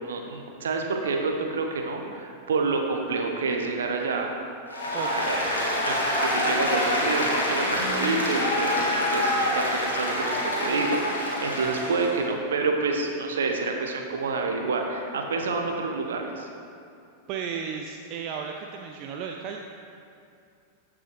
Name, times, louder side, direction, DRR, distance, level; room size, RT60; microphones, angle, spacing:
voice 1, 0.0-4.4 4.8-16.5, right 3 dB, 65° right, 2 dB, 1.1 m, -28 dB
Applause, 4.7-12.2, left 1 dB, 75° left, 1.8 m, -26 dB
voice 2, 17.3-19.6, right 7 dB, 40° right, 2 dB, 0.5 m, -34 dB
14.0 x 6.0 x 3.2 m, 2.4 s
figure-of-eight pair, 90°, 0 cm